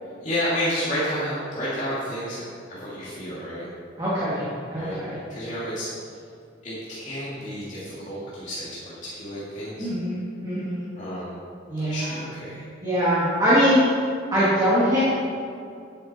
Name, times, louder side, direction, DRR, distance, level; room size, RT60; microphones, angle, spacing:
voice 1, 0.2-2.4 2.7-3.6 4.7-5.0 5.3-5.9 6.6-9.9 11.0-11.3 11.9-12.6, equal, 40° left, -10 dB, 2.6 m, -30 dB
voice 2, 4.0-5.2 9.8-10.9 11.7-12.3 12.8-13.8 14.3-15.0, equal, 20° right, -10 dB, 2.2 m, -23 dB
10.5 x 9.5 x 4.4 m, 2.4 s
head